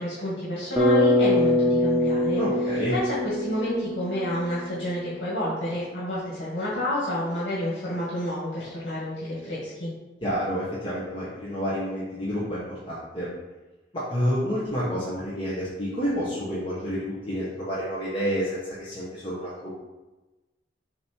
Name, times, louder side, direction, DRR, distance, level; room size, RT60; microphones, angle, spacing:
voice 1, 0.0-2.4 2.9-9.9, left 1 dB, 75° left, -10 dB, 2.0 m, -29 dB
Bass guitar, 0.8-4.9, left 1 dB, 10° right, 1.1 m, -23 dB
voice 2, 2.4-2.9 10.2-12.6 12.9-13.3 13.9-19.7, equal, 30° left, -10 dB, 1.4 m, -29 dB
7.3 x 3.0 x 4.6 m, 1.1 s
head